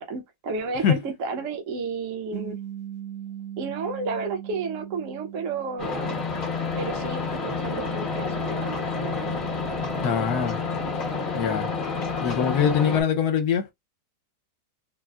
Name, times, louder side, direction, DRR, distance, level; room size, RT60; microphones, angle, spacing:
voice 1, 0.0-2.6 3.6-6.2 6.7-9.4, right 4 dB, 55° right, 1.0 m, -32 dB
sound 1, 2.3-7.0, right 10 dB, 85° right, 1.6 m, -39 dB
sound 2, 5.8-13.0, left 4 dB, 40° left, 0.8 m, -29 dB
voice 2, 10.0-10.6 11.3-11.7 12.2-13.6, left 7 dB, 65° left, 1.2 m, -23 dB
4.1 x 2.0 x 2.3 m
omnidirectional pair, 1.9 m